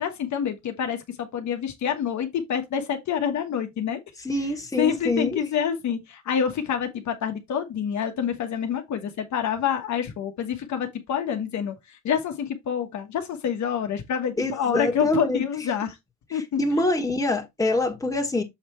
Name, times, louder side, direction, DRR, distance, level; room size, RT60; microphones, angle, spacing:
voice 1, 0.0-4.0 4.8-11.7 12.0-16.0 16.3-16.6, left 8 dB, 70° left, 1.3 m, -27 dB
voice 2, 4.2-5.4 14.4-15.4 16.3-18.4, left 2 dB, 10° left, 1.8 m, -25 dB
7.1 x 3.4 x 4.4 m
cardioid pair, 90°, 30 cm